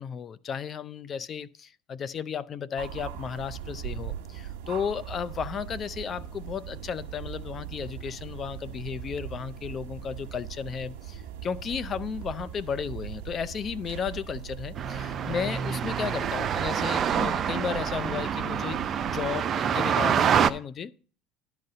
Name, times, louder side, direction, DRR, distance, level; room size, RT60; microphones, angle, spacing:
voice 1, 0.0-20.9, left 7 dB, 40° left, 0.5 m, -34 dB
sound 1, 2.8-19.5, right 10 dB, 80° right, 1.1 m, -40 dB
sound 2, 14.8-20.5, right 8 dB, 40° right, 0.5 m, -26 dB
11.5 x 4.1 x 6.6 m
supercardioid pair, 95°, 0 cm